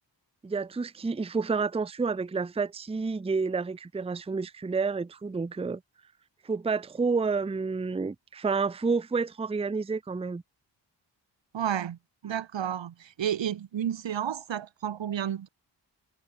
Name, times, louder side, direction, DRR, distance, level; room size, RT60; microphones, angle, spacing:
voice 1, 0.4-5.8 6.4-10.4, right 4 dB, 15° right, 0.5 m, -29 dB
voice 2, 11.5-12.0 12.2-15.5, right 9 dB, 85° right, 1.2 m, -31 dB
wide cardioid pair, 140°, 44 cm